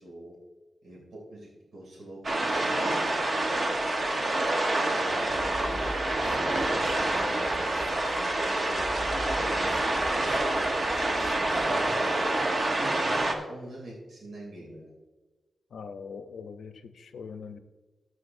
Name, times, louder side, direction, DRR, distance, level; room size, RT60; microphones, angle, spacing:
voice 1, 0.0-0.4 0.8-4.2 4.6-5.9 6.7-9.8 10.5-12.4 13.0-14.9, right 1 dB, 80° right, -3 dB, 2.8 m, -46 dB
sound 1, 2.2-13.3, right 2 dB, 40° right, 1.1 m, -27 dB
sound 2, 5.2-12.1, equal, 15° right, 1.6 m, -41 dB
voice 2, 15.7-17.6, left 5 dB, 90° left, 9 dB, 0.6 m, -42 dB
13.0 x 8.1 x 2.6 m, 1.3 s
wide cardioid pair, 120°, 0 cm